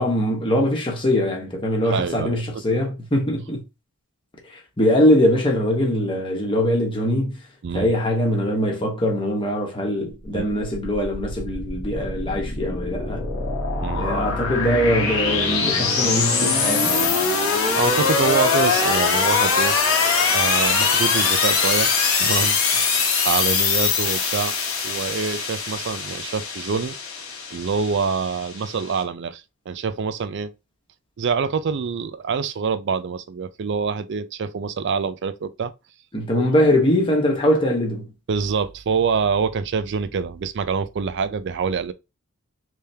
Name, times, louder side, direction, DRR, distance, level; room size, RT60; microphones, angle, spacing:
voice 1, 0.0-3.6 4.5-7.4 7.7-13.3 13.9-17.2 36.1-38.1, left 1 dB, 25° left, 1.1 m, -22 dB
voice 2, 1.8-2.4 2.7-2.8 7.6-7.9 10.3-10.5 13.8-14.1 17.7-19.8 20.3-21.9 22.2-24.5 24.8-27.0 27.5-30.5 31.2-35.7 38.3-41.9, right 5 dB, 55° right, 0.4 m, -25 dB
sound 1, 10.2-29.0, left 5 dB, 65° left, 1.1 m, -22 dB
3.4 x 3.4 x 2.8 m
head